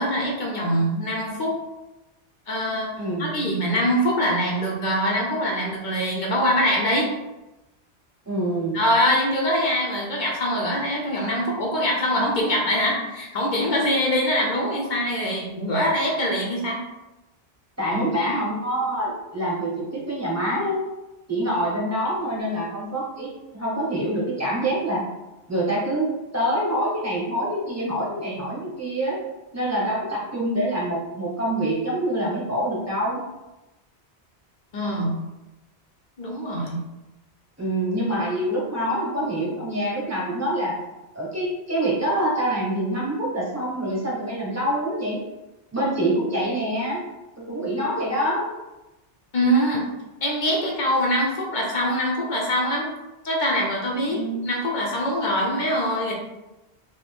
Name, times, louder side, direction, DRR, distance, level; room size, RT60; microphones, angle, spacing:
voice 1, 0.0-1.5 2.5-2.9 3.2-7.1 8.7-16.8 17.9-18.0 34.7-35.1 36.2-36.8 49.3-49.8 50.2-52.9 53.2-56.1, equal, 50° left, -2 dB, 0.7 m, -23 dB
voice 2, 3.0-3.5 8.3-8.8 17.8-20.8 21.3-25.0 25.5-29.2 29.5-33.2 37.6-40.8 41.1-45.2 45.7-47.0 47.5-48.5 54.1-54.4, right 1 dB, 15° right, -6 dB, 0.9 m, -26 dB
2.8 x 2.6 x 3.4 m, 1.0 s
omnidirectional pair, 1.1 m